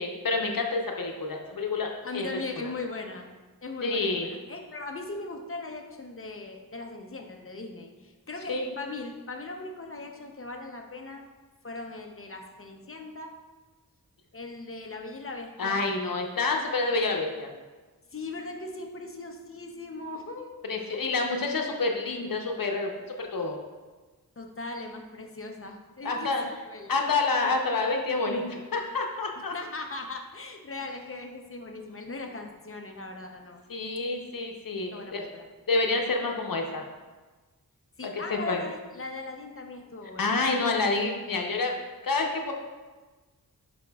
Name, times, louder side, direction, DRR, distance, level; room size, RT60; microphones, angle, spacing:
voice 1, 0.0-2.3 2.6-2.7 3.8-4.3 8.5-8.7 15.6-17.5 20.6-23.6 26.0-26.4 26.9-29.5 33.7-35.3 35.7-36.8 38.0-38.6 40.2-41.8 42.0-42.5, left 3 dB, 65° left, 2 dB, 0.9 m, -28 dB
voice 2, 2.0-3.3 3.6-11.3 11.6-13.3 14.3-15.8 18.1-21.2 24.4-26.3 26.6-26.9 29.5-33.6 34.9-35.4 38.0-40.4, left 3 dB, 35° left, 3 dB, 0.8 m, -39 dB
10.5 x 5.1 x 2.4 m, 1.3 s
wide cardioid pair, 110°, 36 cm